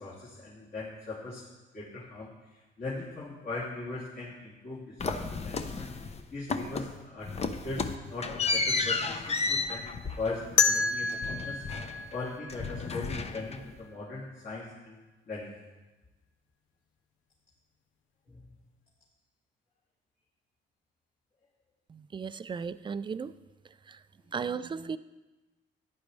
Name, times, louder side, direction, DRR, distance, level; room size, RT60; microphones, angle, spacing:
voice 1, 0.0-1.5 1.7-5.9 6.3-15.0 15.3-15.5 18.3-18.4, left 3 dB, 50° left, -7 dB, 2.7 m, -40 dB
sound 1, 5.0-6.2 6.5-7.0 7.3-12.2 12.5-13.8, left 4 dB, 30° left, 0.8 m, -33 dB
sound 2, 10.6-13.4, left 5 dB, 75° left, 0.7 m, -29 dB
voice 2, 21.9-23.3 23.9-24.0 24.3-25.0, right 6 dB, 25° right, 14 dB, 0.4 m, -35 dB
13.5 x 10.5 x 3.2 m, 1.1 s
cardioid pair, 90°, 20 cm